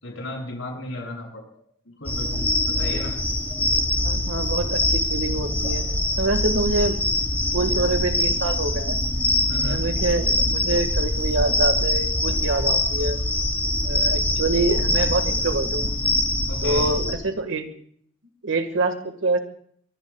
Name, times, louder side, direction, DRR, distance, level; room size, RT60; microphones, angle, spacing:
voice 1, 0.0-1.4 2.0-3.1 9.5-9.8 16.5-16.9, left 1 dB, 85° left, 0 dB, 7.4 m, -34 dB
sound 1, 2.0-17.1, left 1 dB, 10° left, 2.2 m, -23 dB
voice 2, 4.0-5.8 6.2-7.0 7.5-9.0 9.6-13.2 13.8-15.9 16.6-17.7 18.4-19.4, right 2 dB, 80° right, 7 dB, 1.8 m, -25 dB
23.0 x 23.0 x 2.4 m, 0.63 s
head